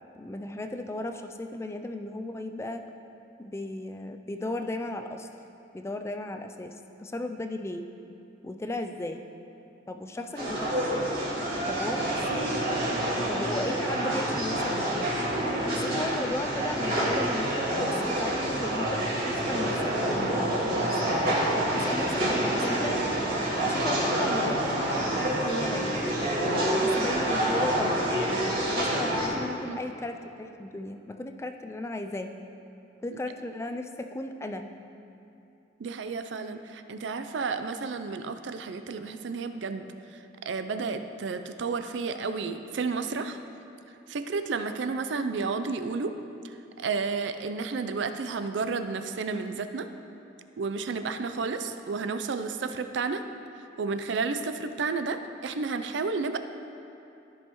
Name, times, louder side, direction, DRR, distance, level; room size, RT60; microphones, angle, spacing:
voice 1, 0.1-2.8 3.4-5.3 5.7-7.8 8.4-9.2 9.9-11.1 11.7-12.8 13.3-15.1 15.6-17.5 17.8-21.1 21.7-22.9 23.6-26.0 26.7-28.0 28.4-32.3 33.0-34.6, left 2 dB, 15° left, 6 dB, 0.3 m, -35 dB
sound 1, 10.3-29.3, right 1 dB, 50° right, 2.0 m, -27 dB
voice 2, 35.8-39.9 40.1-43.4 44.1-46.1 46.8-49.9 50.6-53.2 53.8-56.4, right 4 dB, 70° right, 9 dB, 0.4 m, -31 dB
14.0 x 5.5 x 3.0 m, 2.8 s
head